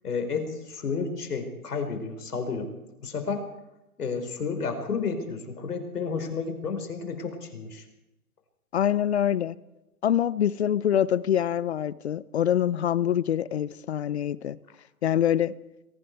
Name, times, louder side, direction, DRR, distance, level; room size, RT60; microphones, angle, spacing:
voice 1, 0.0-2.7 3.0-3.5 4.0-7.8, left 5 dB, 80° left, 4.8 m, -31 dB
voice 2, 8.7-9.5 10.0-14.6 15.0-15.5, left 10 dB, 45° left, 0.7 m, -25 dB
28.0 x 23.0 x 4.7 m
hypercardioid pair, 160°, 46 cm